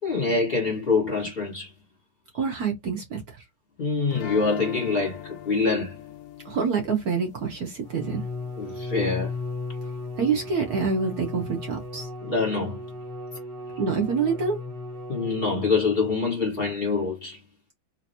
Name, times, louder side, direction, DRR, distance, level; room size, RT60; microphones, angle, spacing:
voice 1, 0.0-1.7 3.8-6.0 8.6-9.3 12.2-12.8 15.1-17.4, left 4 dB, 30° left, 1.9 m, -25 dB
voice 2, 2.3-3.4 6.4-8.2 10.2-12.1 13.8-14.6, right 5 dB, 60° right, 1.3 m, -26 dB
sound 1, 4.1-9.0, left 12 dB, 80° left, 1.2 m, -41 dB
Bowed string instrument, 7.8-16.1, left 2 dB, 30° right, 1.8 m, -36 dB
3.4 x 2.8 x 2.8 m
omnidirectional pair, 2.0 m